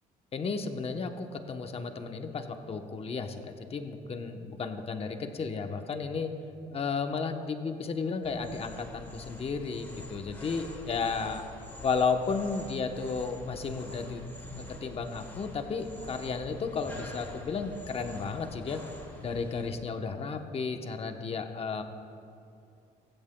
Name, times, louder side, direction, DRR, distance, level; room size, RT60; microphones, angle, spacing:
voice 1, 0.3-6.3 6.7-11.5 11.8-14.2 14.7-18.8 19.2-21.8, left 5 dB, 35° left, 6 dB, 0.9 m, -33 dB
sound 1, 8.2-19.7, left 1 dB, 10° left, 2.0 m, -46 dB
16.0 x 15.0 x 2.2 m, 2.6 s
cardioid pair, 110°, 17 cm